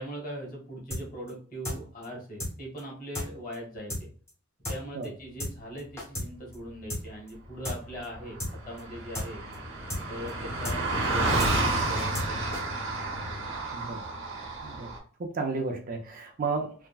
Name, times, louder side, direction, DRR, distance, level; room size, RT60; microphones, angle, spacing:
voice 1, 0.0-4.1 4.7-9.4 10.1-12.6, equal, 40° left, -2 dB, 1.2 m, -40 dB
sound 1, 0.9-1.0 1.3-1.4 1.6-2.1 2.4-2.5 2.8-2.9 3.1-3.3 3.5-3.6 3.9-4.0 4.3-4.4 4.6-4.8 5.0-5.1 5.4-5.5 5.8-6.3 6.5-6.6 6.9-7.0 7.3-7.4 7.6-7.8 8.0-8.1 8.4-8.5 8.8-8.9 9.1-9.3 9.5-9.6 9.9-10.0 10.3-10.4 10.6-10.8 11.0-11.1 11.4-11.5 11.8-12.3 12.5-12.6, left 1 dB, 15° left, 0.7 m, -33 dB
Car passing by, 7.9-8.0 8.1-15.0, right 2 dB, 75° right, 0.9 m, -30 dB
voice 2, 13.7-14.0 14.6-14.9 15.2-16.7, right 4 dB, 45° right, 4 dB, 0.5 m, -32 dB
3.4 x 2.1 x 2.3 m, 0.43 s
head